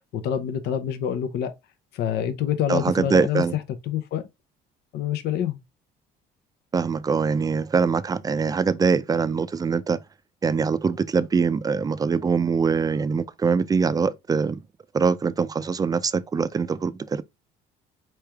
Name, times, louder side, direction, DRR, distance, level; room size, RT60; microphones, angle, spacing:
voice 1, 0.1-1.5 1.9-4.3 4.9-5.6, left 9 dB, 75° left, 0.7 m, -27 dB
voice 2, 2.7-3.6 6.7-10.0 10.4-14.6 14.9-17.2, right 5 dB, 20° right, 0.4 m, -23 dB
4.4 x 3.2 x 3.4 m
cardioid pair, 110°, 17 cm